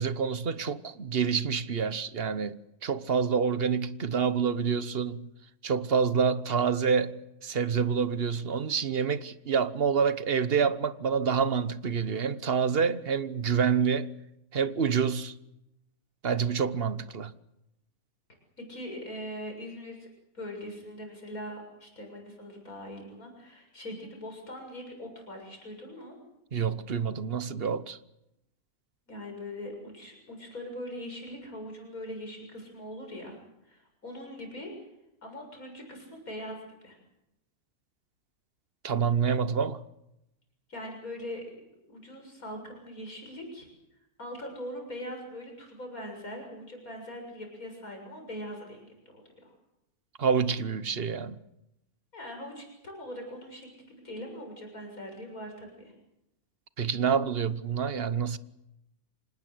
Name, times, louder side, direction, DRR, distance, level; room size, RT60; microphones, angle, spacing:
voice 1, 0.0-5.3 5.6-14.1 14.5-15.3 16.2-17.3 26.5-28.0 38.8-39.8 50.2-51.4 56.8-58.4, right 6 dB, 45° right, 1.1 m, -27 dB
voice 2, 18.6-20.1 20.3-26.2 29.1-34.9 35.2-37.0 40.7-41.5 41.9-43.7 44.2-48.9 49.1-49.5 52.1-55.9, left 1 dB, 65° left, 7.4 m, -41 dB
26.0 x 19.5 x 7.9 m
omnidirectional pair, 1.6 m